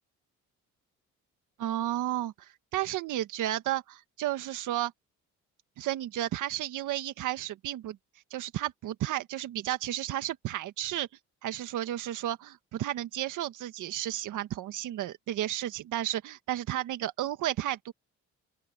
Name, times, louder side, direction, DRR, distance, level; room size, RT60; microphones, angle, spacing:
voice 1, 1.6-4.9 5.8-8.0 8.3-11.1 11.4-17.9, right 13 dB, 85° right, 1.7 m, -32 dB
open air
cardioid pair, 90°, 30 cm